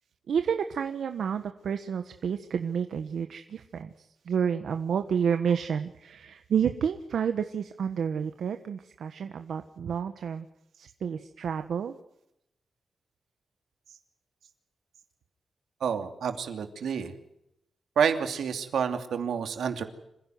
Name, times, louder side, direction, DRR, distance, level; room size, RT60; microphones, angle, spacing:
voice 1, 0.3-10.5 10.8-11.9, right 7 dB, 70° right, 7 dB, 1.3 m, -30 dB
voice 2, 15.8-17.1 18.0-19.8, right 7 dB, 85° right, 6 dB, 2.8 m, -28 dB
27.0 x 16.0 x 9.4 m, 0.82 s
wide cardioid pair, 165°, 0 cm